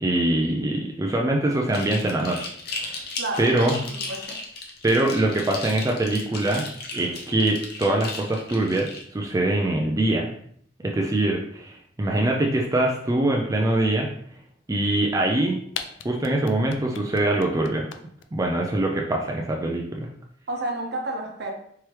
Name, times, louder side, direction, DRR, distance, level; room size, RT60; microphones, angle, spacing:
voice 1, 0.0-3.0 3.4-3.8 4.8-6.7 6.9-10.3 10.8-14.1 14.7-15.6 16.0-17.9 18.3-20.1, right 1 dB, 20° right, 0 dB, 0.4 m, -23 dB
sound 1, 1.7-9.0, left 3 dB, 55° left, 0.8 m, -36 dB
voice 2, 3.2-4.4 20.5-21.5, right 2 dB, 60° right, 2 dB, 0.8 m, -31 dB
sound 2, 15.3-15.4 15.7-18.2, left 8 dB, 75° left, 0.4 m, -35 dB
4.6 x 3.2 x 3.0 m, 0.65 s
head